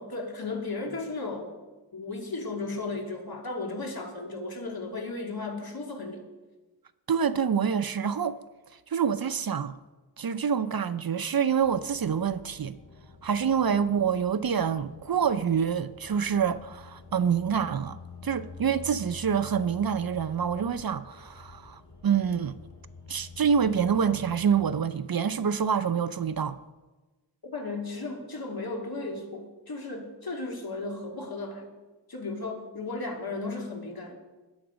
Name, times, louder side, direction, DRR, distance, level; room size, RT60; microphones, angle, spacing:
voice 1, 0.0-1.5 1.9-6.2 27.4-31.7 32.1-34.1, left 3 dB, 55° left, 2.7 m, -35 dB
voice 2, 7.1-8.4 8.9-9.8 10.2-12.8 13.2-22.5 23.1-26.6, right 7 dB, 55° right, 0.6 m, -26 dB
sound 1, 11.6-24.8, left 4 dB, 90° left, 4.1 m, -48 dB
20.5 x 7.9 x 5.1 m
wide cardioid pair, 80°, 44 cm